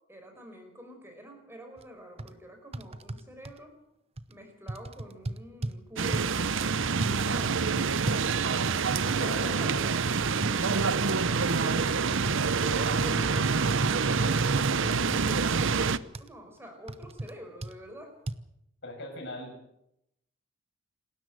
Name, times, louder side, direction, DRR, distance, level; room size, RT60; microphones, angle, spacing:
voice 1, 0.1-3.8 4.3-6.6 6.9-8.0 12.7-18.1, equal, 10° right, 4 dB, 5.2 m, -46 dB
sound 1, 1.8-1.9 2.2-2.3 2.7-3.6 4.2-4.3 4.7-5.8 6.1-6.4 7.0-7.1 7.8-9.4 9.6-9.7 10.1-10.6 11.1-11.3 12.3-12.4 13.0-13.5 13.8-15.2 15.6-15.7 16.1-16.3 16.9-17.3 17.6-17.7 18.3-18.4, right 1 dB, 30° right, 0.8 m, -36 dB
sound 2, 6.0-16.0, right 5 dB, 60° right, 0.7 m, -26 dB
voice 2, 9.2-9.8 18.8-19.6, left 1 dB, 55° left, 2 dB, 6.8 m, -40 dB
28.0 x 13.0 x 7.9 m, 0.81 s
head